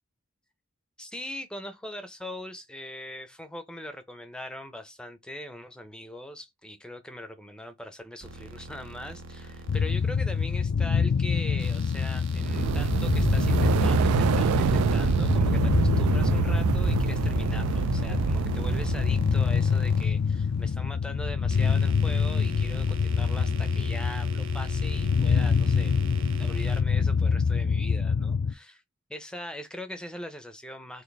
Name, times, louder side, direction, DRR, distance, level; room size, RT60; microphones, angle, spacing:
voice 1, 1.0-26.0 26.4-28.8 29.1-31.0, left 1 dB, 5° left, 0.5 m, -41 dB
sound 1, 8.2-10.6 11.6-15.4 16.4-20.7 21.3-26.8, right 5 dB, 60° right, 0.7 m, -45 dB
sound 2, 9.7-28.5, left 5 dB, 60° left, 0.3 m, -26 dB
sound 3, 12.3-19.3, right 8 dB, 85° right, 0.3 m, -26 dB
3.3 x 2.6 x 4.0 m
head